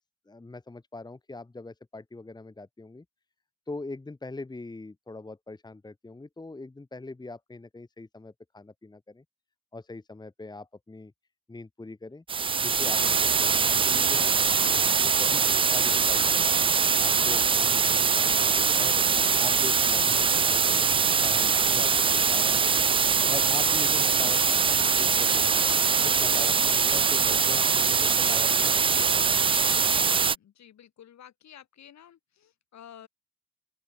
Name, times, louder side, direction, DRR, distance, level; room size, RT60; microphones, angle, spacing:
voice 1, 0.3-3.0 3.7-9.2 9.7-11.1 11.5-12.2 12.6-16.6 17.0-19.0 19.4-20.9 21.2-22.9 23.3-25.7 26.0-29.4, left 2 dB, 15° left, 1.3 m, -42 dB
sound 1, 12.3-30.4, right 5 dB, 20° right, 0.3 m, -23 dB
voice 2, 29.8-33.1, left 10 dB, 65° left, 7.7 m, -51 dB
open air
cardioid pair, 90°, 30 cm